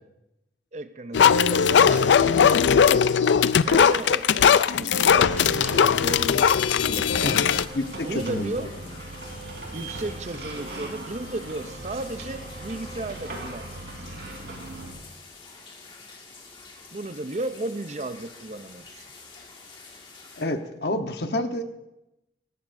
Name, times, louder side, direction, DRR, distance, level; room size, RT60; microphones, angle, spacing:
voice 1, 0.7-2.6 3.6-7.4 8.0-8.7 9.7-14.1 16.9-19.1, right 2 dB, 40° right, 11 dB, 0.6 m, -34 dB
sound 1, 1.1-7.6, left 7 dB, 85° left, 0.4 m, -19 dB
sound 2, 5.1-14.9, right 1 dB, 70° right, 3.7 m, -39 dB
sound 3, 6.4-20.5, left 4 dB, 30° left, 1.9 m, -47 dB
voice 2, 7.2-8.7 20.4-21.6, left 1 dB, 65° left, 6 dB, 1.0 m, -29 dB
19.0 x 14.5 x 2.6 m, 0.92 s
head